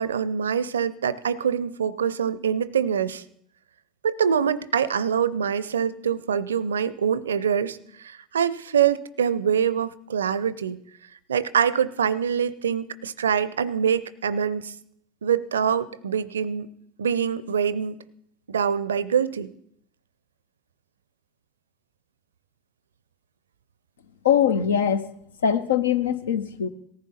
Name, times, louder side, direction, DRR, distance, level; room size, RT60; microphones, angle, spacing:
voice 1, 0.0-3.2 4.0-10.8 11.3-14.7 15.2-16.7 17.0-18.0 18.5-19.5, right 7 dB, 75° right, 19 dB, 0.5 m, -24 dB
voice 2, 24.2-25.1 25.4-26.7, left 8 dB, 75° left, 15 dB, 0.7 m, -22 dB
18.0 x 14.5 x 4.2 m, 0.71 s
figure-of-eight pair, 70°, 0 cm